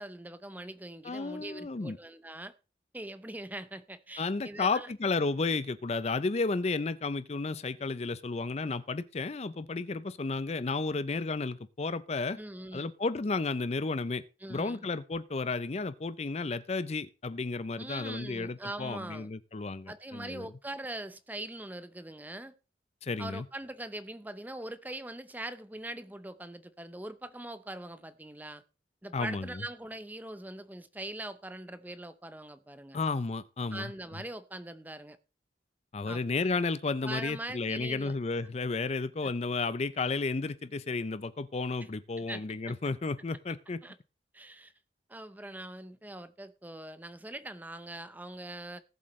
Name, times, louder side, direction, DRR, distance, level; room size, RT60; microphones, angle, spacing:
voice 1, 0.0-2.5 2.9-4.9 12.4-12.9 14.4-14.9 17.8-19.3 19.9-22.5 23.2-28.6 29.0-33.0 33.7-35.2 36.1-36.2 37.0-38.1 39.2-39.3 41.8-41.9 42.3-42.8 43.8-44.0 44.3-44.7 45.1-48.8, right 1 dB, 10° right, 0.7 m, -42 dB
voice 2, 1.0-2.0 4.2-12.4 12.7-14.2 14.5-20.4 23.0-23.4 29.1-29.5 32.9-33.9 35.9-43.8, left 3 dB, 35° left, 0.5 m, -32 dB
18.5 x 7.6 x 3.1 m
head